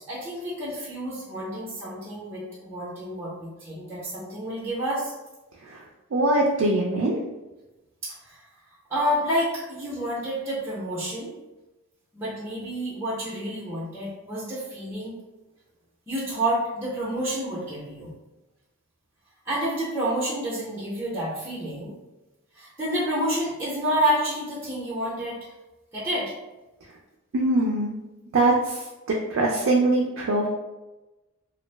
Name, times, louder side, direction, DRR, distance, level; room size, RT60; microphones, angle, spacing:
voice 1, 0.0-5.1 8.0-8.4 8.9-11.3 12.1-15.2 16.1-18.1 19.4-21.9 22.5-25.4 25.9-26.3, equal, 10° right, -10 dB, 0.6 m, -29 dB
voice 2, 6.1-7.2 27.3-27.9 28.3-28.7 29.3-30.5, right 2 dB, 70° right, -2 dB, 0.4 m, -22 dB
2.5 x 2.0 x 3.2 m, 1.1 s
head